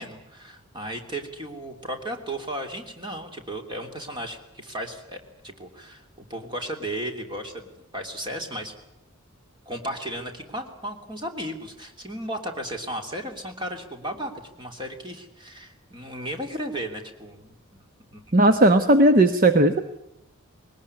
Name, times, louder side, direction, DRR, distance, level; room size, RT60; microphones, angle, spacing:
voice 1, 0.0-8.8 9.6-17.5 18.1-18.5, right 1 dB, 20° right, 4 dB, 3.1 m, -35 dB
voice 2, 18.3-19.8, right 1 dB, 40° right, 8 dB, 1.1 m, -16 dB
21.0 x 19.5 x 9.8 m, 0.84 s
head